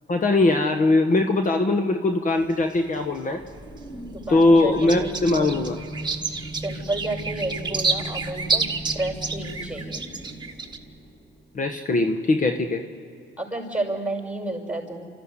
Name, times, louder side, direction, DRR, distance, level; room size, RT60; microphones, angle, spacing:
voice 1, 0.1-3.4 4.3-5.8 11.5-12.8, left 2 dB, 40° left, 6 dB, 1.4 m, -21 dB
sound 1, 2.3-3.8 4.2-10.8, right 4 dB, 20° right, 1.7 m, -30 dB
sound 2, 3.4-11.6, right 1 dB, 20° left, 3.6 m, -38 dB
voice 2, 4.1-5.3 6.6-8.7 8.9-10.0 13.4-15.0, right 2 dB, 5° right, 2 dB, 5.9 m, -31 dB
29.5 x 14.0 x 9.8 m, 2.4 s
cardioid pair, 90°, 20 cm